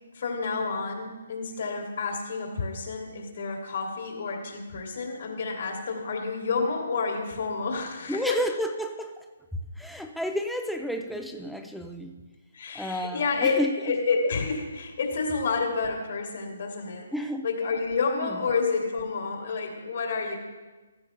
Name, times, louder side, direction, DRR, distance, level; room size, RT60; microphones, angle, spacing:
voice 1, 0.1-8.4 12.5-17.1 17.4-20.4, left 4 dB, 60° left, 1 dB, 2.7 m, -29 dB
voice 2, 8.1-9.3 9.8-12.2 12.7-13.7 17.1-17.5 18.0-18.4, equal, ahead, 4 dB, 0.8 m, -31 dB
15.0 x 13.5 x 2.3 m, 1.2 s
hypercardioid pair, 150°, 0 cm